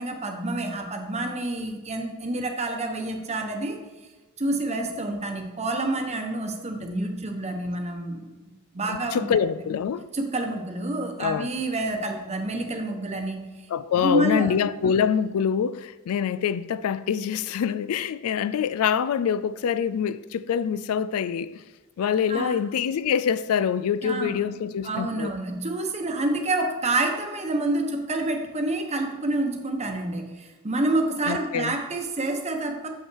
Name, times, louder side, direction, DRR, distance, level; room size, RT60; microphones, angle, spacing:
voice 1, 0.0-3.8 4.4-9.3 10.1-13.4 14.0-14.5 14.8-15.0 22.3-22.6 24.0-24.3 24.8-32.9, right 2 dB, 30° right, 1.0 m, -28 dB
voice 2, 8.9-10.1 11.2-11.5 13.7-21.6 22.0-25.3 31.3-31.8, left 7 dB, 75° left, 0.3 m, -25 dB
7.3 x 5.6 x 4.6 m
head